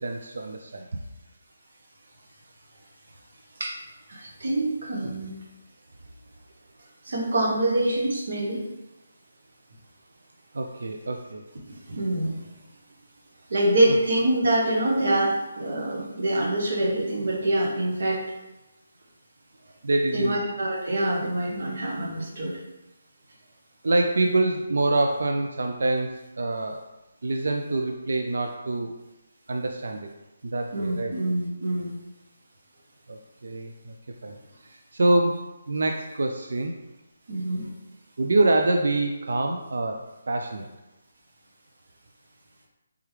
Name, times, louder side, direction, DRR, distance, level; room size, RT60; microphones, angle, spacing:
voice 1, 0.0-0.9 10.5-11.4 13.9-14.0 19.8-20.4 23.8-26.8 27.2-28.9 29.5-30.1 30.4-31.1 33.1-33.9 34.2-34.4 34.6-35.4 35.7-36.7 38.2-40.7, right 2 dB, 70° right, 3 dB, 0.3 m, -25 dB
voice 2, 4.1-5.3 7.1-8.6 11.9-12.3 13.5-18.2 20.1-22.5 30.7-32.0 37.3-37.7, right 1 dB, 55° right, -1 dB, 0.8 m, -25 dB
3.4 x 3.3 x 3.1 m, 1.0 s
hypercardioid pair, 175°, 0 cm